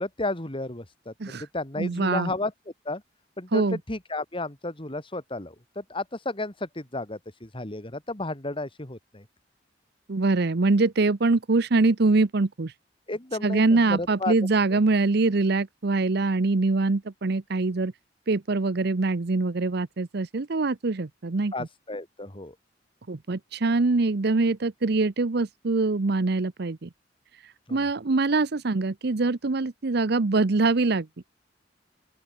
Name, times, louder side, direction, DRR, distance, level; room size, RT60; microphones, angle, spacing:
voice 1, 0.0-2.5 2.8-3.0 3.4-9.2 13.1-14.3 21.5-22.5 27.7-27.9, left 2 dB, 30° left, 2.7 m, -33 dB
voice 2, 1.8-2.3 3.5-3.8 10.1-12.7 13.4-17.9 18.3-21.5 23.1-26.9 27.7-31.1, right 3 dB, 65° right, 0.8 m, -24 dB
open air
head